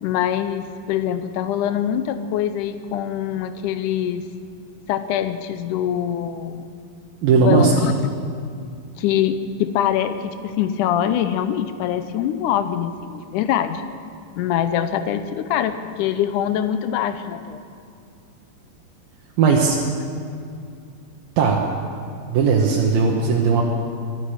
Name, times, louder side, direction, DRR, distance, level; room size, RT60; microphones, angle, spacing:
voice 1, 0.0-4.2 4.9-6.7 7.3-7.9 9.0-13.8 14.3-17.6, left 10 dB, 80° left, 10 dB, 1.8 m, -23 dB
voice 2, 7.2-7.7 19.4-19.8 21.4-21.6 22.3-23.6, right 5 dB, 75° right, -1 dB, 2.8 m, -17 dB
22.5 x 11.0 x 4.9 m, 2.4 s
omnidirectional pair, 4.2 m